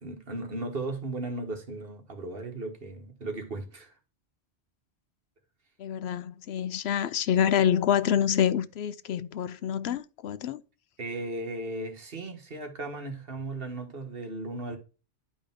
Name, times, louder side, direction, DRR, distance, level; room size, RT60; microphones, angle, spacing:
voice 1, 0.0-3.9 11.0-14.8, right 2 dB, 60° right, 1.6 m, -36 dB
voice 2, 5.8-10.6, left 9 dB, 75° left, 0.8 m, -27 dB
10.5 x 5.2 x 3.6 m
omnidirectional pair, 1.1 m